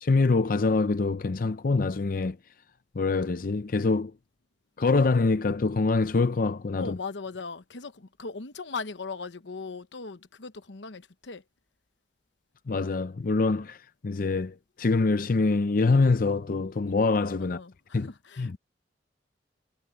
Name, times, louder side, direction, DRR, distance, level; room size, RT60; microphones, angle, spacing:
voice 1, 0.0-2.4 3.0-4.1 4.8-7.0 12.7-13.8 14.0-17.6 17.9-18.1 18.4-18.6, left 3 dB, 50° left, 0.5 m, -25 dB
voice 2, 6.8-11.4 17.5-18.6, left 4 dB, 85° left, 1.0 m, -38 dB
head